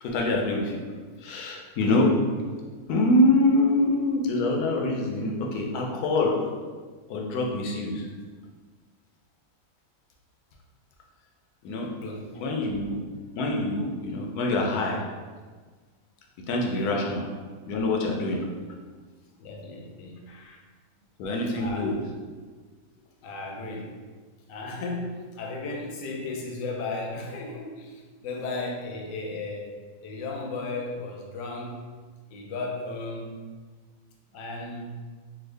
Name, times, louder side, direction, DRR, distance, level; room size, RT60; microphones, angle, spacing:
voice 1, 0.0-0.8 1.2-2.1 2.9-6.4 7.1-8.1 11.6-11.9 12.4-13.0 13.4-15.0 16.5-17.2 17.7-18.4 21.2-22.0, left 2 dB, 90° left, 0 dB, 1.1 m, -25 dB
voice 2, 12.0-12.4 16.5-17.0 19.4-20.6 21.5-22.0 23.2-24.0 24.4-31.9 32.3-33.4 34.3-35.0, left 3 dB, 70° left, 0 dB, 0.9 m, -35 dB
3.5 x 2.0 x 3.2 m, 1.5 s
omnidirectional pair, 1.6 m